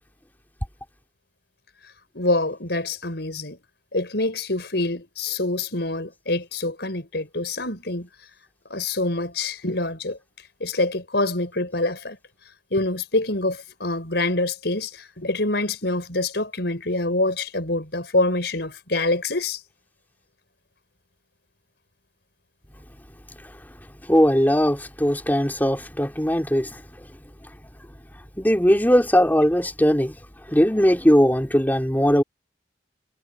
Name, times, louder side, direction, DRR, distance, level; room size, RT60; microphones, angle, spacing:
voice 1, 2.1-3.6 3.9-8.1 8.7-10.2 10.6-12.2 12.7-19.6, left 2 dB, 65° left, 5.3 m, -25 dB
voice 2, 24.1-26.8 28.4-30.2 30.5-32.2, equal, 10° left, 3.1 m, -19 dB
head